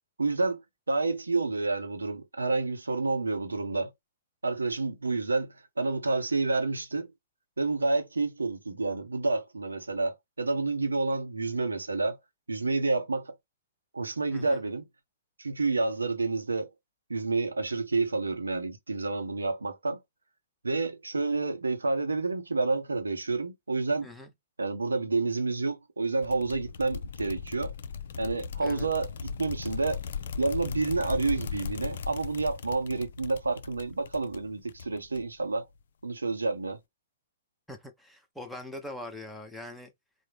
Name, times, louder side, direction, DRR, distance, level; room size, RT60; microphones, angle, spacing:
voice 1, 0.2-3.9 4.4-7.1 7.6-12.2 12.5-13.3 13.9-14.8 15.4-16.7 17.1-20.0 20.6-24.1 24.6-27.7 28.2-30.0 30.4-35.6 36.0-36.8, right 3 dB, 80° right, 0.7 m, -29 dB
voice 2, 14.3-14.6 24.0-24.3 28.6-28.9 37.7-39.9, left 1 dB, ahead, 0.7 m, -42 dB
sound 1, 26.2-35.5, left 6 dB, 60° left, 0.3 m, -38 dB
3.5 x 2.0 x 3.2 m
figure-of-eight pair, 115°, 0 cm